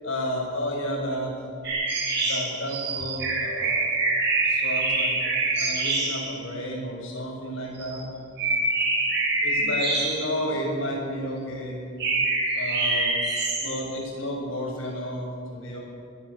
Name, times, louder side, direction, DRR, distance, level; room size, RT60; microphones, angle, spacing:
voice 1, 0.0-1.3 2.2-3.9 4.4-5.2 5.6-8.1 9.4-11.8 12.6-13.2 13.6-15.8, equal, 80° left, -1 dB, 7.1 m, -31 dB
sound 1, 1.6-6.3 7.8-8.0 8.4-10.6 12.0-13.9, right 2 dB, 55° right, 6.2 m, -25 dB
21.5 x 16.5 x 7.5 m, 2.4 s
head